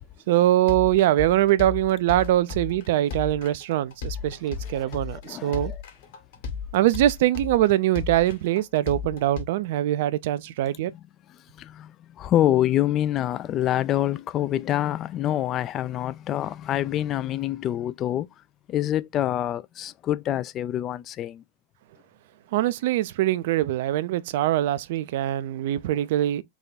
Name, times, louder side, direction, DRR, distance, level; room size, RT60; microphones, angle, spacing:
voice 1, 0.3-5.7 6.7-10.9 22.5-26.4, right 13 dB, 55° right, 0.4 m, -23 dB
sound 1, 0.7-9.4, left 6 dB, 55° left, 1.8 m, -34 dB
voice 2, 4.7-5.8 10.9-11.0 11.6-18.3 18.7-21.4, left 12 dB, 30° left, 0.3 m, -26 dB
3.6 x 3.1 x 4.0 m
figure-of-eight pair, 90°, 0 cm